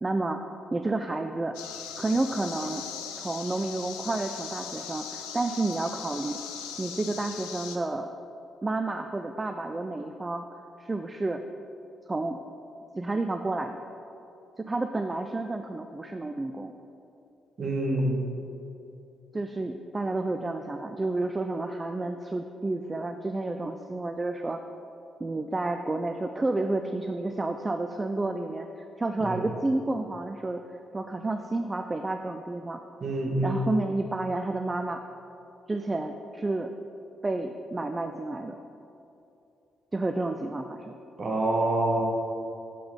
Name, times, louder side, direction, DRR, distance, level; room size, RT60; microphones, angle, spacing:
voice 1, 0.0-0.4 0.7-1.5 2.0-2.8 3.2-6.4 6.8-8.1 8.6-10.4 10.8-11.4 12.1-12.4 12.9-13.8 14.6-16.7 19.3-24.6 25.2-32.8 33.4-35.0 35.7-36.7 37.2-38.6 39.9-41.0, right 2 dB, 25° right, 7 dB, 0.3 m, -30 dB
sound 1, 1.5-7.8, left 8 dB, 75° left, 0.4 m, -39 dB
voice 2, 17.6-18.2 29.2-29.5 33.0-33.7 41.2-42.0, right 1 dB, 45° right, 0 dB, 1.2 m, -26 dB
6.6 x 3.9 x 5.4 m, 2.8 s
figure-of-eight pair, 40°, 0 cm